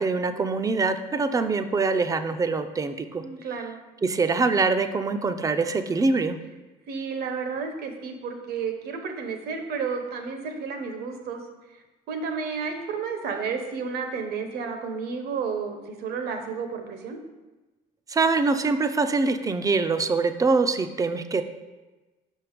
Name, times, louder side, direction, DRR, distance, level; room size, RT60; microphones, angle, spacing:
voice 1, 0.0-3.2 4.0-6.4 18.1-21.4, right 4 dB, 20° right, 9 dB, 0.4 m, -24 dB
voice 2, 3.2-3.8 6.9-11.5 12.1-17.2, right 5 dB, 70° right, 6 dB, 0.9 m, -31 dB
5.6 x 4.5 x 5.1 m, 1.1 s
cardioid pair, 110°, 17 cm